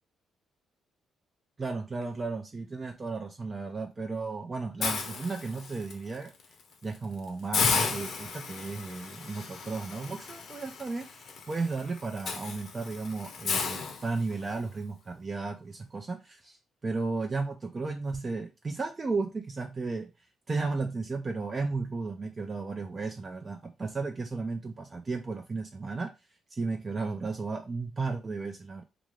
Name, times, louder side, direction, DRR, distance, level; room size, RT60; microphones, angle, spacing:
voice 1, 1.6-6.3 6.8-20.1 20.5-26.1 26.5-28.8, right 3 dB, 30° right, 0.4 m, -34 dB
Hiss, 4.8-5.9 6.4-6.6 6.9-7.0 7.5-14.6, left 5 dB, 60° left, 0.6 m, -34 dB
2.5 x 2.4 x 3.1 m
cardioid pair, 90°, 0 cm